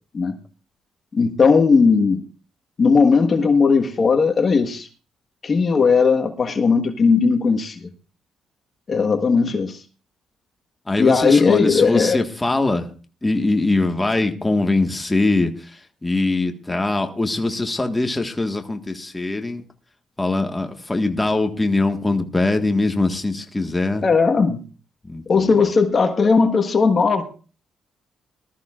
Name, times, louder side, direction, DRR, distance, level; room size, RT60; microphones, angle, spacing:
voice 1, 1.1-2.2 2.8-4.9 5.4-7.8 8.9-9.8 11.0-12.2 24.0-24.6 25.3-27.2, left 5 dB, 40° left, 6 dB, 1.4 m, -17 dB
voice 2, 10.9-12.9 13.2-19.6 20.2-24.0 25.0-25.7, left 2 dB, 15° left, 5 dB, 1.5 m, -22 dB
19.5 x 13.5 x 2.5 m, 0.37 s
cardioid pair, 90°, 0 cm